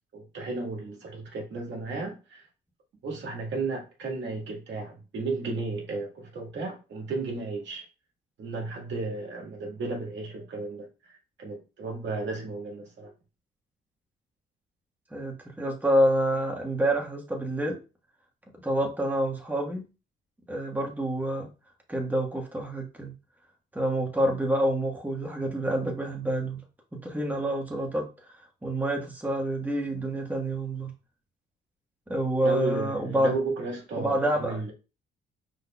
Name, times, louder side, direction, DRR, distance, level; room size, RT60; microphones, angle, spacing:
voice 1, 0.1-2.5 3.0-7.9 8.4-13.1 32.4-34.7, right 3 dB, 65° right, 1.7 m, -34 dB
voice 2, 15.1-17.8 18.6-19.8 20.5-21.5 21.9-23.1 23.7-26.6 27.0-30.9 32.1-33.3 34.0-34.6, right 1 dB, 10° right, 1.4 m, -27 dB
5.1 x 4.2 x 2.3 m
cardioid pair, 90°, 20 cm